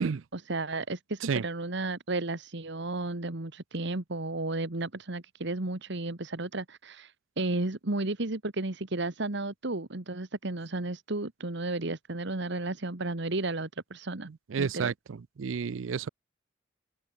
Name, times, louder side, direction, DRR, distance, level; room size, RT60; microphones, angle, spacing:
voice 1, 0.0-14.3 14.6-14.9, right 2 dB, 65° right, 1.7 m, -33 dB
voice 2, 14.3-16.1, right 6 dB, 80° right, 0.5 m, -31 dB
open air
head